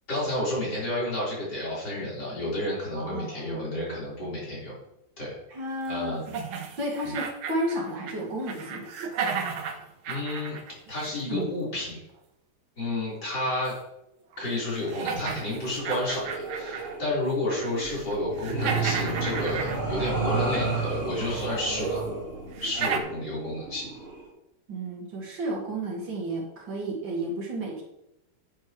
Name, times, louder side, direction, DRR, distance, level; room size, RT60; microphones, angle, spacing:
voice 1, 0.1-4.7 5.2-5.4 5.9-6.2 7.0-7.1 10.1-10.6 10.9-12.0 12.8-13.8 14.4-22.0 22.6-23.9, left 1 dB, 55° left, -7 dB, 4.8 m, -30 dB
voice 2, 2.9-3.7 5.5-6.2 6.8-8.9 24.7-27.8, right 1 dB, 65° right, -1 dB, 2.6 m, -32 dB
sound 1, 6.3-8.2 8.5-11.5 13.7-13.8 14.3-14.4 14.9-17.0 17.3-17.8 18.1-20.3 21.4-21.5 22.0-22.1 22.5-23.0, right 6 dB, 90° right, 1.8 m, -33 dB
sound 2, 15.3-24.3, right 4 dB, 40° right, 2.2 m, -33 dB
10.0 x 8.6 x 3.1 m, 0.85 s
omnidirectional pair, 2.2 m